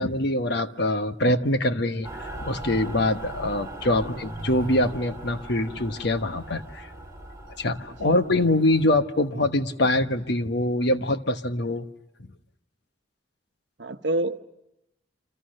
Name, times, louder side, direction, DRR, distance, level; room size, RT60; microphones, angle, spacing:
voice 1, 0.0-6.9 7.6-11.9, left 1 dB, 65° left, 9 dB, 1.2 m, -24 dB
Mechanical fan, 2.0-8.8, right 1 dB, 20° right, 6.0 m, -39 dB
voice 2, 3.6-4.2 8.0-8.2 13.8-14.4, right 1 dB, 70° right, 9 dB, 1.1 m, -30 dB
29.5 x 26.5 x 6.6 m, 0.88 s
head